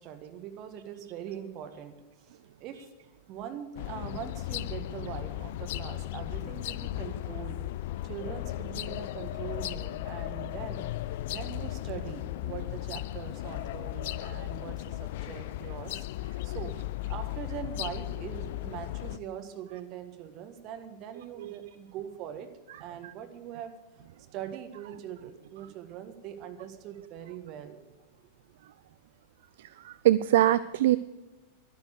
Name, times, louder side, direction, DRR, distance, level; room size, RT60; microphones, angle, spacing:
voice 1, 0.0-2.9 3.3-7.6 8.0-16.7 17.1-22.5 22.8-23.7 24.3-27.8, right 9 dB, 40° right, 7 dB, 1.6 m, -42 dB
sound 1, 3.8-19.2, left 16 dB, 50° left, 0.4 m, -36 dB
voice 2, 29.8-31.0, right 13 dB, 55° right, 16 dB, 0.3 m, -23 dB
11.5 x 11.5 x 6.7 m, 1.1 s
figure-of-eight pair, 90°, 0 cm